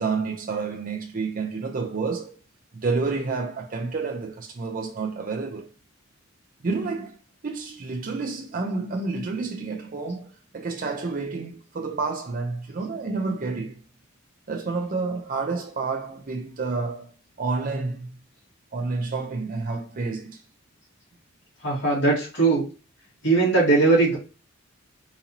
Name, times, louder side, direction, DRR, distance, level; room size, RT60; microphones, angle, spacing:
voice 1, 0.0-2.3 2.7-5.7 6.6-7.1 7.4-10.3 10.5-13.8 14.5-17.1 17.4-18.1 18.7-20.3, right 4 dB, 40° right, 0.5 m, -29 dB
voice 2, 21.6-22.7 23.2-24.2, right 3 dB, 60° left, 2.0 m, -19 dB
3.9 x 2.7 x 2.8 m
head